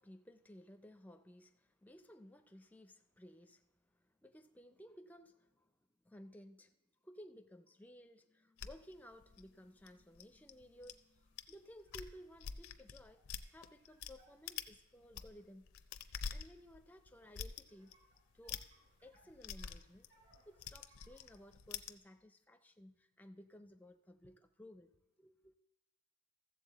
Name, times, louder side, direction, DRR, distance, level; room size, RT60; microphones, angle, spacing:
voice 1, 0.0-5.7 6.0-6.8 7.0-15.7 16.0-17.9 18.3-18.6 19.0-20.1 20.5-24.9 25.2-25.6, equal, 5° left, 0.4 m, -58 dB
sound 1, 8.6-10.9 11.4-11.5 11.8-14.1 14.5-14.8 15.0-21.9, left 7 dB, 80° left, 0.5 m, -47 dB
sound 2, 11.1-15.4 16.4-16.5 16.8-21.5, right 2 dB, 60° right, 4.6 m, -73 dB
14.5 x 7.5 x 4.0 m
head